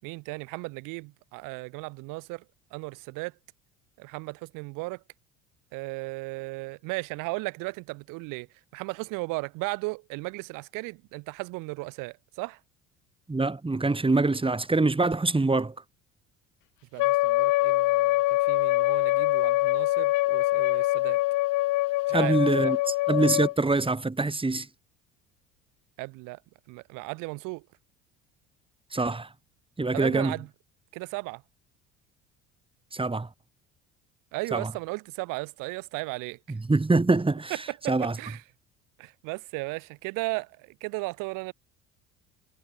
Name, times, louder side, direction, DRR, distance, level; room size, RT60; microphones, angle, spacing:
voice 1, 0.0-2.4 2.7-3.3 4.0-5.0 5.7-8.5 8.7-12.6 16.9-21.2 22.1-22.8 26.0-26.4 26.7-27.7 29.9-30.5 30.9-31.4 34.3-36.6 37.5-38.4 39.0-41.5, right 26 dB, 70° right, 5.5 m, -36 dB
voice 2, 13.3-15.7 22.1-24.7 28.9-29.3 29.8-30.3 32.9-33.3 34.5-34.7 36.7-37.5 37.9-38.1, right 3 dB, 15° right, 5.5 m, -24 dB
Wind instrument woodwind instrument, 17.0-23.5, left 19 dB, 65° left, 2.6 m, -24 dB
hypercardioid pair, 70°, 33 cm